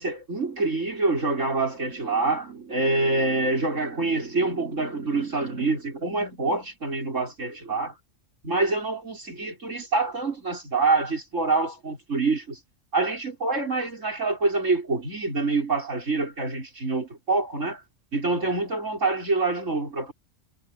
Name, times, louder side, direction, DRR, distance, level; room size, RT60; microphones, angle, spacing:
voice 1, 0.0-7.9 8.4-12.6 12.9-17.8 18.1-20.1, right 3 dB, 90° right, 6.2 m, -26 dB
omnidirectional pair, 1.3 m